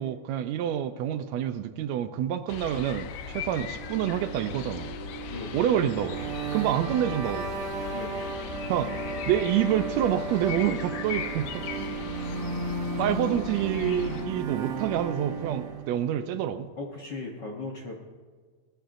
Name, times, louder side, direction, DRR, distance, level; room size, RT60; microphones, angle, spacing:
voice 1, 0.0-5.0 5.5-7.5 8.7-8.9 9.3-11.6 13.0-16.7, right 10 dB, 75° right, 10 dB, 1.7 m, -27 dB
sound 1, 2.5-14.3, left 9 dB, 90° left, 1.4 m, -39 dB
sound 2, 2.9-15.9, right 3 dB, 60° right, 1.5 m, -35 dB
voice 2, 5.3-5.6 7.9-8.3 16.8-17.9, left 3 dB, 65° left, -1 dB, 1.0 m, -37 dB
19.5 x 15.0 x 2.6 m, 1.5 s
omnidirectional pair, 3.5 m